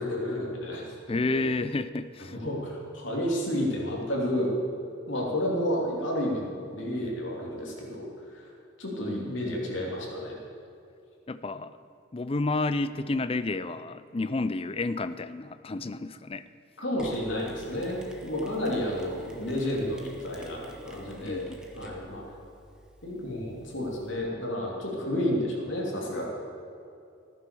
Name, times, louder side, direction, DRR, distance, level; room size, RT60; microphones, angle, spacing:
voice 1, 0.0-0.9 1.3-1.4 2.3-4.6 5.1-8.5 8.8-10.4 16.8-21.5 21.7-22.2 23.0-26.2, left 1 dB, 65° left, -2 dB, 3.1 m, -31 dB
voice 2, 1.1-2.4 11.3-11.8 12.1-16.5 21.2-21.6, left 2 dB, 30° left, 13 dB, 0.5 m, -30 dB
Mechanisms, 17.0-24.1, right 1 dB, 5° right, 1.2 m, -48 dB
14.5 x 9.7 x 6.9 m, 2.6 s
head